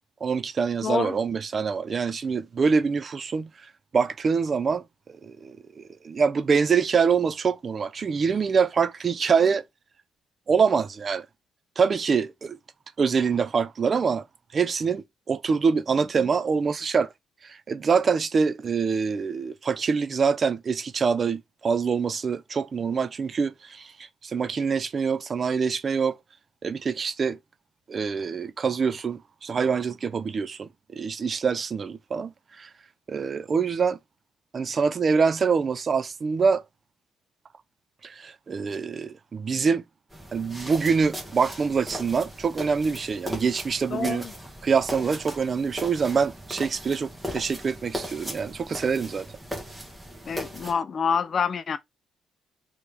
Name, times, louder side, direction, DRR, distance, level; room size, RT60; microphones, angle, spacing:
voice 1, 0.2-3.5 3.9-4.8 5.2-9.6 10.5-11.2 11.8-12.6 13.0-14.2 14.5-17.1 17.4-23.9 24.2-26.2 26.6-27.4 27.9-32.7 33.1-34.0 34.5-36.6 38.0-39.8 40.3-44.3 44.6-49.3, right 5 dB, 45° right, 0.5 m, -25 dB
voice 2, 0.8-1.2 43.9-44.3 50.3-51.8, left 6 dB, 50° left, 0.5 m, -27 dB
sound 1, 40.1-50.7, equal, 10° right, 1.4 m, -38 dB
3.3 x 3.1 x 3.4 m
cardioid pair, 90°, 0 cm